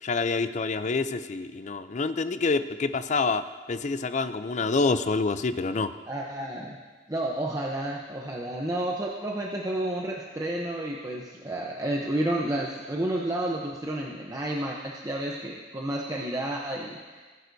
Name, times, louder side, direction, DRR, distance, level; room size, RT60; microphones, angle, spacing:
voice 1, 0.0-5.9, left 4 dB, 40° left, 11 dB, 0.5 m, -27 dB
voice 2, 6.1-6.8 7.1-17.3, right 1 dB, 20° right, -2 dB, 0.8 m, -31 dB
19.5 x 11.0 x 2.7 m, 1.4 s
head